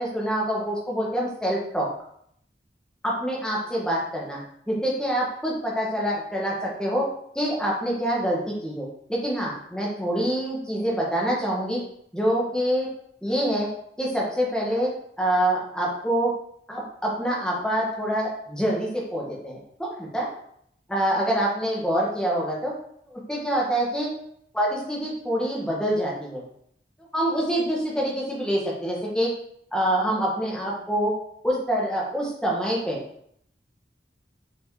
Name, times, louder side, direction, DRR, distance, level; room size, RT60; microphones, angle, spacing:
voice 1, 0.0-1.9 3.0-4.4 4.7-7.1 7.3-11.8 12.1-12.9 13.2-13.7 14.0-16.3 16.7-20.3 20.9-22.7 23.1-24.1 24.5-26.4 27.1-29.3 29.7-31.1 31.4-33.0, right 1 dB, 5° left, -4 dB, 1.6 m, -26 dB
5.8 x 4.6 x 4.9 m, 0.69 s
head